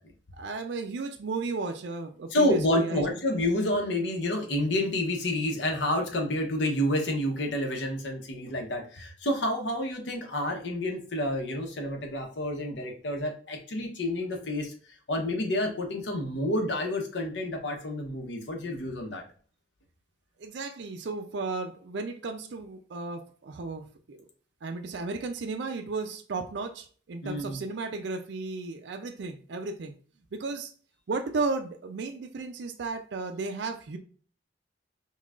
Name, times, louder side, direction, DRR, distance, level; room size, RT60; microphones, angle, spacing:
voice 1, 0.3-3.0 20.4-24.2 24.6-29.9 30.3-30.7 31.1-34.0, right 3 dB, 70° right, 6 dB, 0.4 m, -34 dB
voice 2, 2.3-14.7 15.1-19.2 27.2-27.6, left 1 dB, 80° left, 3 dB, 0.9 m, -29 dB
5.5 x 2.3 x 2.4 m, 0.42 s
head